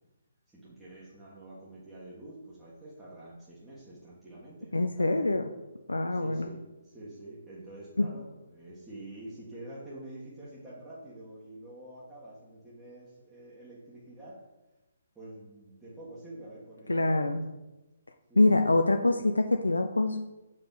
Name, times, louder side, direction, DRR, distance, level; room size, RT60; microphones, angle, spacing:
voice 1, 0.5-5.3 6.1-14.4 15.1-17.5 18.3-18.7, right 1 dB, 10° right, -9 dB, 1.5 m, -47 dB
voice 2, 4.7-5.4 5.9-6.5 8.0-8.1 16.9-17.4 18.4-20.2, left 2 dB, 90° left, 5 dB, 0.5 m, -25 dB
6.4 x 4.9 x 4.0 m, 1.0 s
figure-of-eight pair, 140°, 0 cm